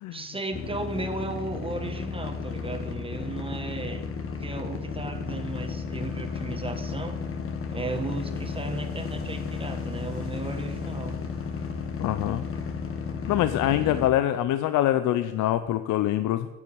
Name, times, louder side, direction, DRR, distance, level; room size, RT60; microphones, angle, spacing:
voice 1, 0.1-4.1 4.4-7.2 7.7-11.2 13.6-14.1, right 2 dB, 20° right, 6 dB, 1.6 m, -35 dB
sound 1, 0.5-14.1, left 5 dB, 45° left, 1.8 m, -33 dB
voice 2, 12.0-12.4 13.3-16.5, left 13 dB, 85° left, 12 dB, 0.6 m, -24 dB
9.7 x 6.9 x 8.7 m, 1.2 s
cardioid pair, 90°, 30 cm